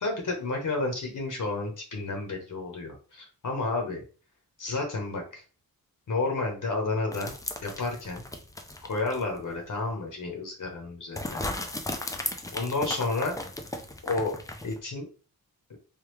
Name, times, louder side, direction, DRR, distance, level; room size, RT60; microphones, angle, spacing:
voice 1, 0.0-4.0 4.6-5.4 6.1-7.3 7.6-8.2 8.8-11.4 12.5-13.4 14.0-14.3 14.6-15.0, left 3 dB, 55° left, 1 dB, 1.0 m, -31 dB
sound 1, 7.1-9.4 9.7-9.8 11.2-14.8, left 1 dB, 10° left, 0.4 m, -36 dB
3.4 x 2.3 x 3.1 m, 0.36 s
wide cardioid pair, 85°, 36 cm